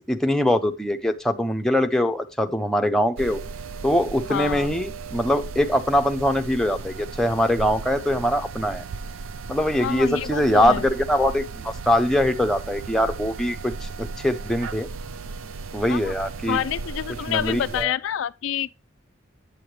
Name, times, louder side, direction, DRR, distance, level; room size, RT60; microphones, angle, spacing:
voice 1, 0.1-3.4 3.8-8.8 9.5-14.9 15.7-16.6 17.3-17.9, left 1 dB, 5° left, 0.6 m, -22 dB
sound 1, 3.2-17.8, right 4 dB, 80° right, 0.5 m, -36 dB
voice 2, 4.3-4.7 9.8-10.9 15.9-16.1 16.5-18.8, left 9 dB, 70° left, 0.3 m, -28 dB
8.6 x 7.7 x 3.2 m
head